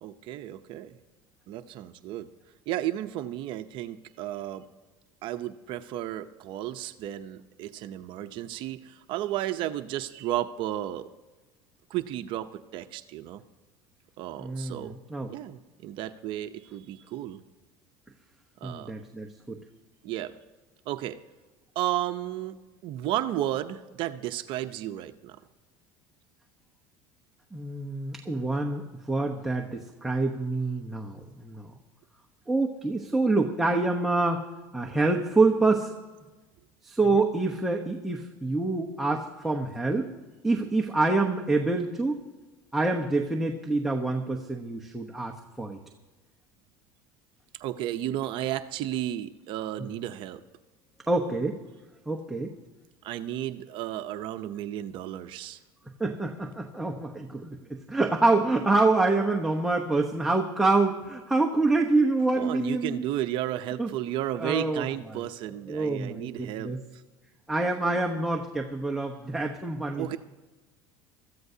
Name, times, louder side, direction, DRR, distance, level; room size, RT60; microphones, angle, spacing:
voice 1, 0.0-1.0 1.5-2.3 2.7-4.6 5.2-11.1 11.9-13.4 14.2-14.9 15.3-17.4 18.6-18.9 20.0-20.3 20.9-21.2 21.8-22.6 22.8-25.4 37.1-37.2 47.6-50.4 53.0-55.6 62.3-66.7 69.9-70.2, right 13 dB, 55° right, 9 dB, 0.7 m, -33 dB
voice 2, 14.4-15.3 18.6-19.6 27.5-31.7 32.5-34.5 34.7-35.9 36.8-40.1 40.4-42.2 42.7-45.8 49.8-49.9 51.1-51.6 52.1-52.5 56.0-63.0 63.8-63.9 64.4-65.3 65.7-66.8 67.5-70.2, right 3 dB, 5° right, 0 dB, 1.0 m, -26 dB
22.5 x 14.5 x 2.8 m, 1.2 s
supercardioid pair, 130°, 10 cm